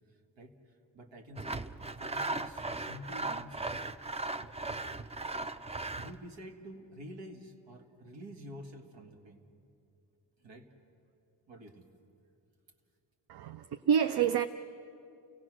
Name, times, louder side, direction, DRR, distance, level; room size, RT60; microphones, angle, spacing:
voice 1, 0.1-1.6 2.0-3.6 5.9-9.4 10.4-10.7 11.5-11.9, equal, 85° right, 3 dB, 2.0 m, -49 dB
Sawing, 1.4-6.2, right 2 dB, 15° right, 0.4 m, -37 dB
voice 2, 13.3-14.5, right 8 dB, 60° right, 11 dB, 0.6 m, -28 dB
29.5 x 16.5 x 6.2 m, 2.6 s
cardioid pair, 85°, 44 cm